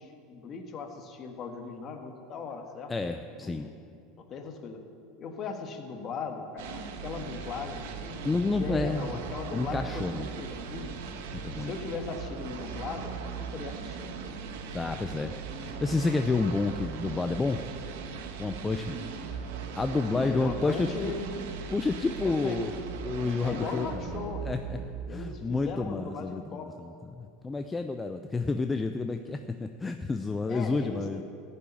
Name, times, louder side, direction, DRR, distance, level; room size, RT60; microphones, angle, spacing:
voice 1, 0.0-2.9 3.4-3.7 4.2-4.8 5.2-8.2 8.6-10.9 11.6-14.1 20.1-21.3 22.2-22.6 23.4-24.4 25.1-26.7 30.5-31.2, left 5 dB, 35° left, 4 dB, 1.5 m, -38 dB
voice 2, 2.9-3.7 8.2-9.1 9.5-10.3 11.3-11.7 14.7-17.6 18.4-19.0 19.7-21.1 21.7-22.7 23.0-24.0 24.4-24.8 25.1-31.2, left 3 dB, 10° left, 7 dB, 0.4 m, -30 dB
sound 1, 6.6-25.6, right 6 dB, 80° right, 1.3 m, -39 dB
14.0 x 7.1 x 10.0 m, 2.5 s
supercardioid pair, 145°, 0 cm